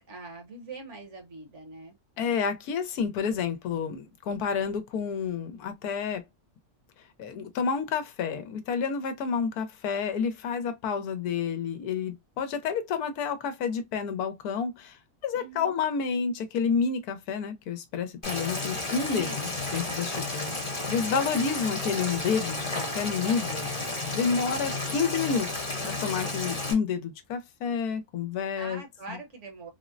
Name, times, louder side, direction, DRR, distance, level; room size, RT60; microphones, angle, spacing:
voice 1, 0.1-2.0 15.3-15.7 19.1-19.5 28.6-29.7, right 2 dB, 55° right, 1.1 m, -42 dB
voice 2, 2.2-6.2 7.2-20.5 20.9-23.7 24.1-28.8 29.1-29.2, left 6 dB, 85° left, 1.2 m, -29 dB
Boiling, 18.2-26.7, left 2 dB, 25° left, 0.8 m, -32 dB
3.6 x 2.0 x 2.4 m
omnidirectional pair, 1.6 m